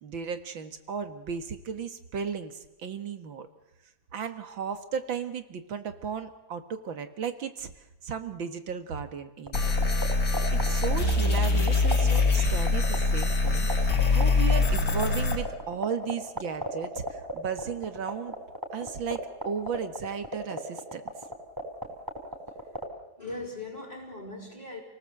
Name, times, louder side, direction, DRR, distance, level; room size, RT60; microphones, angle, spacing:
voice 1, 0.0-3.5 4.1-7.7 8.0-9.8 10.5-18.4 18.7-19.2 19.5-21.0, right 6 dB, 80° right, 9 dB, 2.4 m, -35 dB
sound 1, 9.5-15.4, left 3 dB, 55° left, 3.8 m, -24 dB
sound 2, 9.5-22.8, equal, 10° right, 4.6 m, -32 dB
voice 2, 23.2-24.8, left 2 dB, 20° left, -6 dB, 4.3 m, -40 dB
29.5 x 18.5 x 7.9 m, 0.94 s
omnidirectional pair, 2.1 m